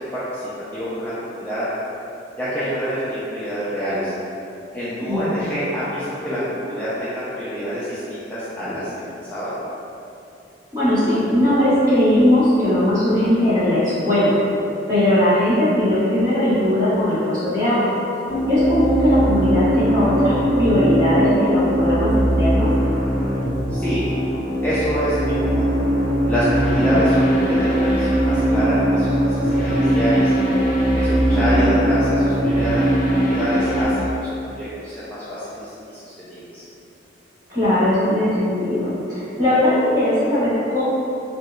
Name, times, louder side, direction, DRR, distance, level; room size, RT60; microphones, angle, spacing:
voice 1, 0.7-1.6 2.4-4.1 4.7-8.9 9.3-9.5 23.7-24.0 24.6-25.7 26.3-30.3 30.9-36.6, equal, 10° left, -13 dB, 0.4 m, -26 dB
voice 2, 10.7-14.3 14.9-17.9 18.5-22.1 22.4-22.7 26.8-27.0 31.3-31.7 37.5-40.8, left 1 dB, 20° right, -13 dB, 1.2 m, -19 dB
sound 1, 18.3-33.8, right 1 dB, 25° left, 0.9 m, -20 dB
4.5 x 2.1 x 2.4 m, 2.8 s
head